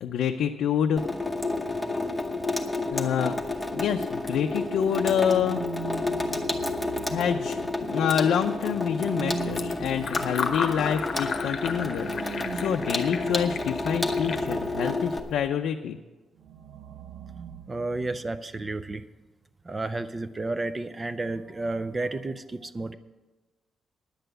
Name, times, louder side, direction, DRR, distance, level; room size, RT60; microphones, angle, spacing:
voice 1, 0.0-1.0 2.9-3.3 3.7-5.6 7.1-16.0, left 8 dB, 85° left, 4 dB, 0.5 m, -27 dB
Water tap faucet / Sink (filling or washing), 1.0-15.2, left 2 dB, 5° left, 0.9 m, -30 dB
sound 1, 4.8-8.1 8.8-15.4 16.4-18.3, right 6 dB, 75° right, 0.6 m, -41 dB
Fill (with liquid), 9.3-15.5, left 5 dB, 45° left, 0.8 m, -35 dB
voice 2, 17.7-19.0 19.7-22.9, right 2 dB, 20° right, 12 dB, 0.4 m, -31 dB
10.5 x 8.0 x 7.9 m, 1.2 s
wide cardioid pair, 175°, 0 cm